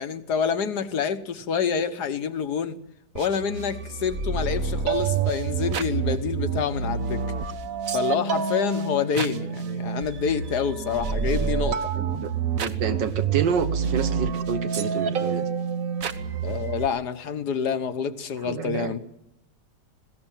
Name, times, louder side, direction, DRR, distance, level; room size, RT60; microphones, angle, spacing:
voice 1, 0.0-2.8 3.1-7.2 7.9-11.9 16.4-19.0, left 7 dB, 65° left, 11 dB, 1.7 m, -27 dB
sound 1, 3.2-16.9, right 6 dB, 55° right, 1.4 m, -28 dB
voice 2, 11.0-11.5 12.0-12.3 12.6-15.5 18.4-19.0, right 6 dB, 85° right, 11 dB, 2.0 m, -29 dB
20.0 x 17.5 x 9.0 m, 0.85 s
omnidirectional pair, 1.9 m